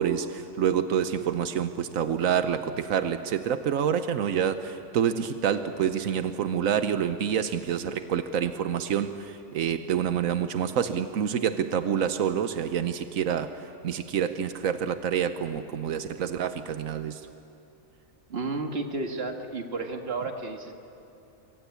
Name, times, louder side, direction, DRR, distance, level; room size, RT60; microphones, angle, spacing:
voice 1, 0.0-17.3, right 8 dB, 90° right, 9 dB, 1.3 m, -27 dB
voice 2, 18.3-20.7, right 3 dB, 50° right, 4 dB, 2.1 m, -32 dB
26.5 x 24.0 x 8.4 m, 2.8 s
omnidirectional pair, 1.4 m